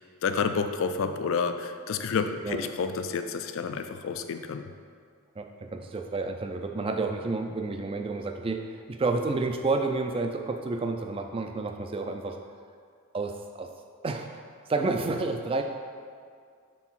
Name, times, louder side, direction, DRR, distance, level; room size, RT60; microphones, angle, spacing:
voice 1, 0.2-4.7, left 5 dB, 60° left, 8 dB, 0.3 m, -29 dB
voice 2, 5.4-12.4 13.1-13.7 14.0-14.4 14.7-15.6, right 3 dB, 25° right, 5 dB, 0.3 m, -30 dB
4.5 x 4.1 x 5.6 m, 2.2 s
head